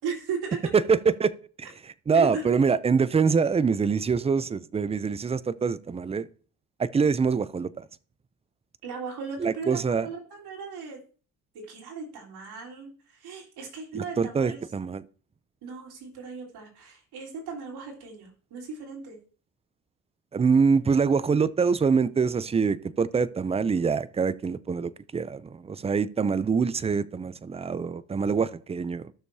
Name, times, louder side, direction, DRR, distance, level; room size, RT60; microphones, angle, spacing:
voice 1, 0.0-0.8 2.1-2.5 8.8-9.7 10.0-11.0 11.5-14.6 15.6-19.2, right 5 dB, 75° right, 3.7 m, -37 dB
voice 2, 0.7-1.3 1.6-6.3 6.8-7.8 9.4-10.1 13.9-15.0 20.3-29.1, right 5 dB, 15° right, 0.4 m, -25 dB
15.0 x 6.4 x 2.7 m
cardioid pair, 115°, 40 cm